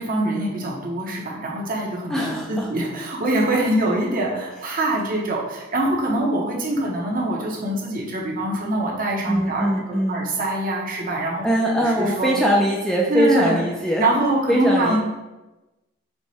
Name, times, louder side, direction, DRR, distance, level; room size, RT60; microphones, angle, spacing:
voice 1, 0.0-11.4 12.0-12.3 13.1-13.6 14.0-15.0, right 1 dB, 45° right, -2 dB, 0.8 m, -24 dB
voice 2, 2.1-2.7 9.3-10.3 11.4-15.0, equal, ahead, -2 dB, 0.3 m, -22 dB
4.5 x 2.1 x 4.1 m, 1.1 s
head